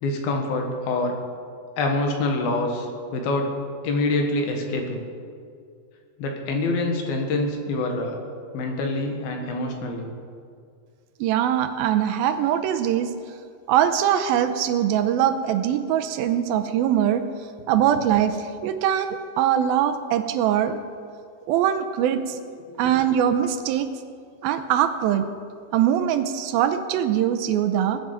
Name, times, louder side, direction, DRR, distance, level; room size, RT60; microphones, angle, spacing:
voice 1, 0.0-1.2 1.8-3.5 3.8-5.0 6.2-8.2 8.5-10.1 22.7-22.8, left 2 dB, 75° left, 3 dB, 3.3 m, -26 dB
voice 2, 11.2-13.1 13.7-17.2 17.7-20.8 21.5-22.4 22.8-23.9 24.4-25.3 25.7-28.0, right 10 dB, 85° right, 9 dB, 2.5 m, -22 dB
22.0 x 10.0 x 5.0 m, 2.3 s
omnidirectional pair, 4.4 m